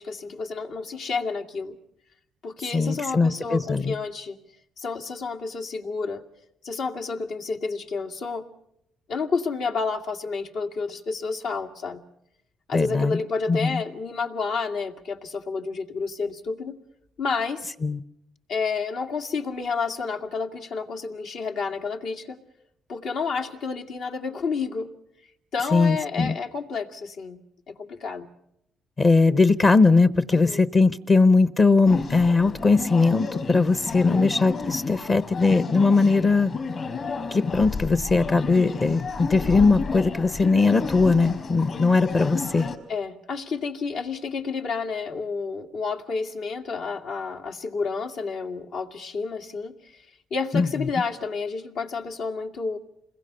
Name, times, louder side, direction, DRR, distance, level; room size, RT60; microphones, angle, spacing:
voice 1, 0.0-1.7 2.4-4.4 4.8-6.2 6.6-8.5 9.1-12.0 12.7-16.8 17.2-17.7 18.5-22.4 22.9-24.9 25.5-27.4 27.7-28.3 30.3-30.6 34.0-34.2 42.9-52.8, left 4 dB, 80° left, 2.2 m, -30 dB
voice 2, 2.7-3.9 12.7-13.2 13.5-13.8 17.8-18.0 25.7-26.4 29.0-36.5 37.3-42.7 50.5-50.7, left 3 dB, 35° left, 0.9 m, -20 dB
sound 1, 31.8-42.8, left 4 dB, 55° left, 4.6 m, -32 dB
28.0 x 21.5 x 6.9 m
cardioid pair, 90°, 0 cm